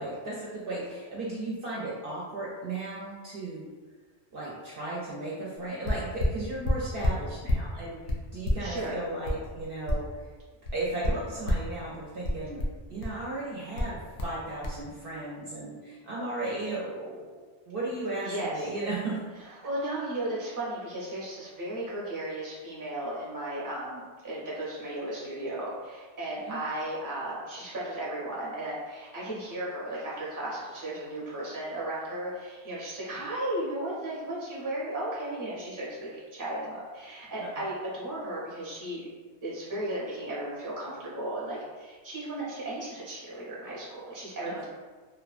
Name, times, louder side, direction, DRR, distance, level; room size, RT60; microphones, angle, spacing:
voice 1, 0.0-3.7 4.3-8.0 8.3-10.1 10.7-12.6 12.9-19.2 26.4-26.6 37.4-37.6 44.4-44.7, right 2 dB, 60° right, -7 dB, 0.7 m, -35 dB
sound 1, 5.8-7.7 8.1-10.3 10.6-11.7 12.2-13.2 13.8-14.4 14.6-14.8, left 1 dB, 90° left, 0.9 m, -29 dB
voice 2, 8.6-9.0 18.2-18.7 19.4-39.1 39.4-44.7, right 1 dB, 20° right, -7 dB, 0.6 m, -35 dB
2.9 x 2.1 x 2.4 m, 1.4 s
omnidirectional pair, 1.2 m